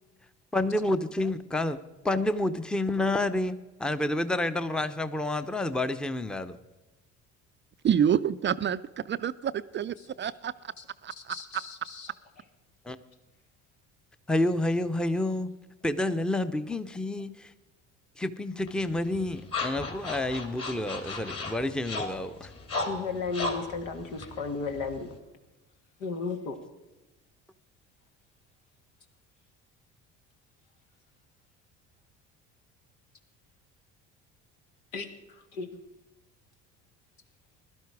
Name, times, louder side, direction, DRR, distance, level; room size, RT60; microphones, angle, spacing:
voice 1, 0.5-1.8 2.0-6.6 12.9-13.0 14.3-15.5 15.8-17.5 18.2-22.5, left 1 dB, ahead, 11 dB, 0.7 m, -29 dB
voice 2, 7.8-8.8 9.1-10.5 11.0-11.4, right 9 dB, 30° right, 14 dB, 0.4 m, -27 dB
voice 3, 11.2-12.1 22.9-25.1 26.0-26.6 34.9-35.7, left 4 dB, 80° left, 5 dB, 1.7 m, -35 dB
sound 1, 18.7-25.2, left 3 dB, 40° left, 3.0 m, -36 dB
16.0 x 12.0 x 4.8 m, 1.1 s
hypercardioid pair, 65°, 36 cm